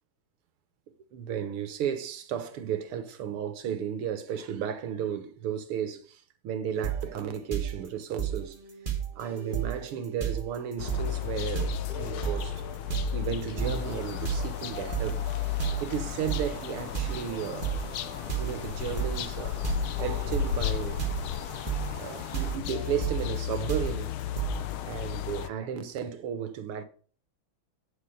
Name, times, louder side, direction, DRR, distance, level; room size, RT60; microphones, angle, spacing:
voice 1, 1.1-8.6 9.2-12.6 13.1-17.7 18.4-19.7 20.0-21.1 22.0-24.1 24.8-26.8, right 8 dB, 85° right, 2.0 m, -34 dB
sound 1, 6.8-7.2 7.5-24.8, right 9 dB, 25° right, 1.6 m, -34 dB
sound 2, 10.8-25.5, left 14 dB, 75° left, 1.5 m, -34 dB
sound 3, 13.6-22.6, left 5 dB, 50° left, 1.7 m, -43 dB
9.5 x 6.7 x 5.0 m
omnidirectional pair, 2.4 m